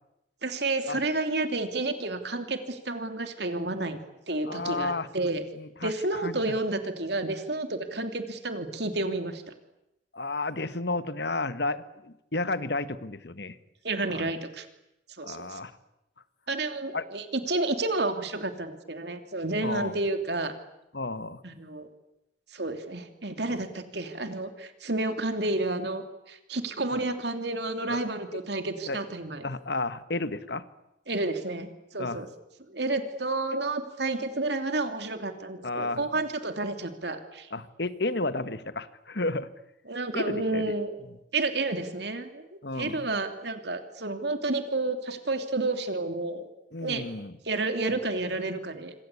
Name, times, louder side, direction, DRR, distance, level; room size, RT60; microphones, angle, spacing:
voice 1, 0.4-4.0 4.3-5.4 5.8-9.4 13.8-14.7 15.2-15.6 16.5-20.5 21.4-21.9 22.5-29.4 31.1-32.3 32.7-37.5 39.9-41.0 41.3-42.5 42.7-46.5 46.8-47.0 47.4-48.9, right 2 dB, 60° right, 7 dB, 2.9 m, -30 dB
voice 2, 4.5-5.1 5.5-5.9 6.2-6.4 10.1-13.6 14.1-14.3 15.2-15.7 16.9-17.0 19.6-20.0 20.9-21.4 23.5-23.6 27.9-28.1 28.9-29.0 29.4-30.6 32.0-32.2 35.6-36.0 37.5-39.5 40.1-40.7 42.6-43.0 46.7-47.3, left 2 dB, 60° left, 13 dB, 1.3 m, -32 dB
26.5 x 25.5 x 8.5 m, 0.87 s
head